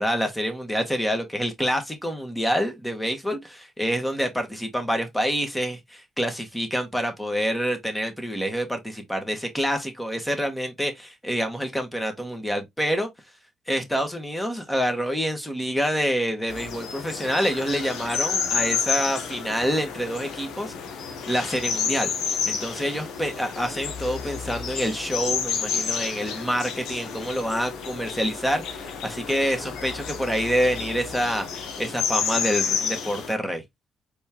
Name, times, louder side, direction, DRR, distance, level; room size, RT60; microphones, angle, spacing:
voice 1, 0.0-13.1 13.7-20.7 21.3-22.1 22.4-33.6, equal, 5° left, 1.6 m, -27 dB
sound 1, 16.5-33.3, left 6 dB, 85° left, 1.1 m, -30 dB
4.3 x 3.6 x 2.9 m
cardioid pair, 90°, 0 cm